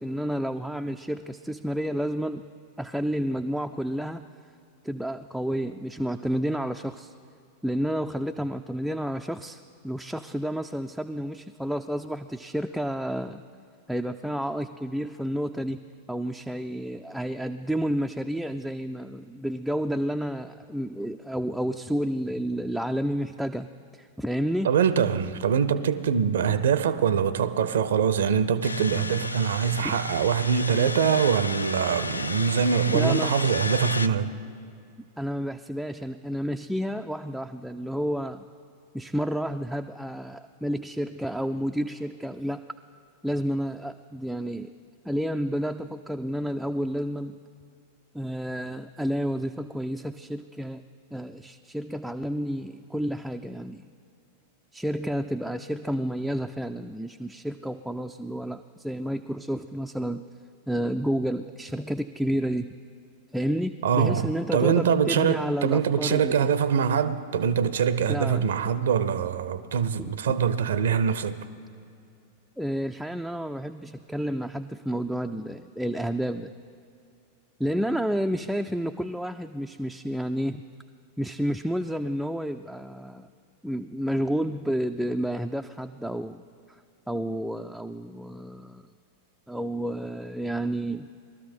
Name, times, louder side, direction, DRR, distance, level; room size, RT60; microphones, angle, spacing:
voice 1, 0.0-2.5 2.8-4.3 4.8-7.1 7.6-13.4 13.9-15.8 16.1-23.7 23.9-24.7 29.8-30.0 32.9-33.3 35.2-38.4 38.9-42.6 43.2-44.7 45.0-47.4 48.1-50.8 51.1-53.9 54.7-60.3 60.7-62.7 63.3-66.5 68.1-68.5 72.6-76.5 77.6-80.6 81.2-83.3 83.6-86.4 86.7-86.8 87.1-88.8 89.5-91.1, equal, ahead, 0.3 m, -30 dB
voice 2, 24.6-34.3 63.8-71.4, right 7 dB, 65° right, 0.6 m, -24 dB
sound 1, 28.6-34.1, left 3 dB, 80° left, 0.3 m, -33 dB
19.5 x 13.0 x 4.4 m
figure-of-eight pair, 90°, 0 cm